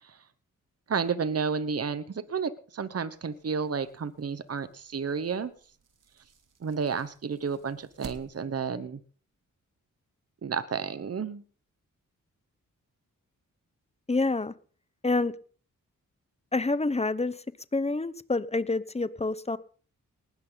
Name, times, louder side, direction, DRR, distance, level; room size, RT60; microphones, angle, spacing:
voice 1, 0.9-5.5 6.6-9.0 10.4-11.4, right 5 dB, 45° right, 14 dB, 1.2 m, -31 dB
sound 1, 3.1-8.7, right 5 dB, 65° right, 3.0 m, -53 dB
voice 2, 14.1-14.5 15.0-15.3 16.5-17.4 17.7-19.6, left 3 dB, 20° left, 16 dB, 1.1 m, -27 dB
19.5 x 13.5 x 4.1 m, 0.43 s
cardioid pair, 65°, 33 cm